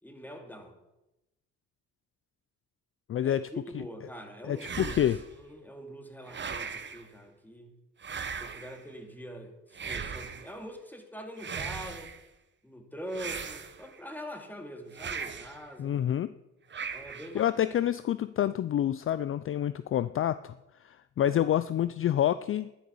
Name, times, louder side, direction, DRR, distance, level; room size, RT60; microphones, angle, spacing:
voice 1, 0.0-0.8 3.2-7.8 8.3-12.1 12.6-16.0 16.9-17.5 21.2-21.4, equal, 5° left, 4 dB, 2.6 m, -44 dB
voice 2, 3.1-3.4 4.4-5.2 15.8-16.3 17.3-20.5 20.8-22.7, left 11 dB, 45° left, 15 dB, 0.5 m, -28 dB
sound 1, 4.6-5.4 6.3-7.0 8.0-8.8 9.7-10.5 11.4-12.2 13.1-14.0 14.9-15.6 16.7-17.4, right 6 dB, 40° right, 1.3 m, -38 dB
11.5 x 10.0 x 7.1 m, 0.96 s
cardioid pair, 90°, 30 cm